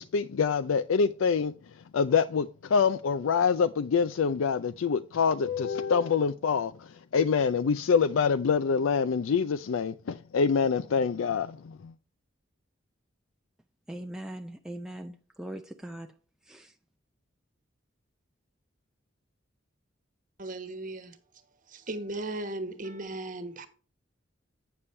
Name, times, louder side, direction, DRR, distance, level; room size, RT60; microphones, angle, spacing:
voice 1, 0.0-11.9, left 6 dB, 85° left, 0.4 m, -26 dB
voice 2, 13.9-16.1 16.5-16.7, right 1 dB, 5° right, 0.4 m, -40 dB
voice 3, 20.4-21.2 21.7-23.7, right 2 dB, 40° right, 1.1 m, -36 dB
8.6 x 6.9 x 3.2 m
head